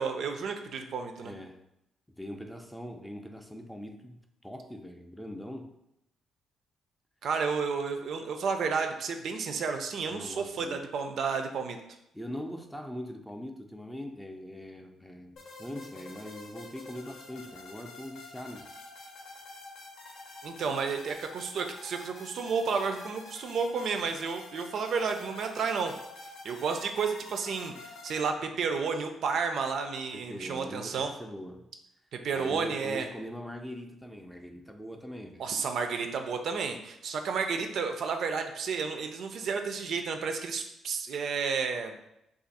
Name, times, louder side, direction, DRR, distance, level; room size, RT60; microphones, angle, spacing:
voice 1, 0.0-1.3 7.2-11.8 20.4-25.9 26.4-31.1 32.1-33.1 35.4-42.0, right 5 dB, 65° right, 6 dB, 0.3 m, -31 dB
voice 2, 1.2-1.6 2.2-5.7 10.1-10.8 12.1-18.7 30.1-31.7 32.3-35.4, equal, 5° left, 4 dB, 0.4 m, -42 dB
sound 1, 15.4-28.2, left 2 dB, 80° left, 0.8 m, -48 dB
2.5 x 2.4 x 4.0 m, 0.83 s
cardioid pair, 90°, 0 cm